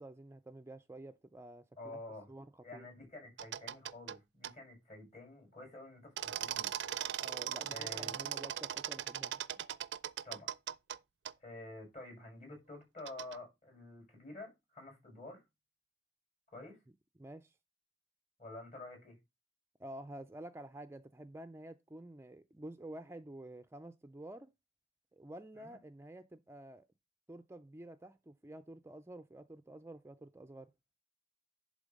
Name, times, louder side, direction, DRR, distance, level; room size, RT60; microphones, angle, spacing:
voice 1, 0.0-1.6 1.9-2.0 2.3-2.9 7.2-9.4 17.2-17.5 19.8-24.5 25.1-26.9 27.3-30.7, right 1 dB, 15° right, 0.4 m, -50 dB
voice 2, 1.8-2.3 2.6-6.7 7.7-8.2 10.2-10.5 11.4-15.4 16.5-16.8 18.4-19.1 25.5-25.8, left 2 dB, 40° left, 6.5 m, -49 dB
sound 1, 3.4-4.2 4.4-4.5 6.2-11.0 11.3-11.4 13.1-13.4, right 10 dB, 70° right, 0.4 m, -39 dB
11.0 x 3.8 x 5.2 m
head